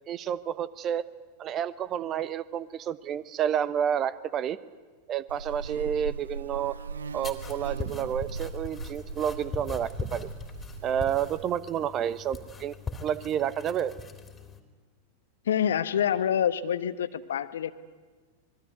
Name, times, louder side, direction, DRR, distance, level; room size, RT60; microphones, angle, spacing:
voice 1, 0.1-1.0 1.4-4.6 5.1-6.8 7.1-10.3 10.8-12.7 13.0-13.9, right 9 dB, 30° right, 17 dB, 1.1 m, -30 dB
Buzz, 5.3-11.4, right 4 dB, 70° right, 1.0 m, -39 dB
sound 1, 7.2-14.6, left 4 dB, 15° left, 3.2 m, -41 dB
voice 2, 15.5-17.7, left 9 dB, 65° left, 13 dB, 1.2 m, -26 dB
25.5 x 22.0 x 9.5 m, 1.4 s
figure-of-eight pair, 90°, 0 cm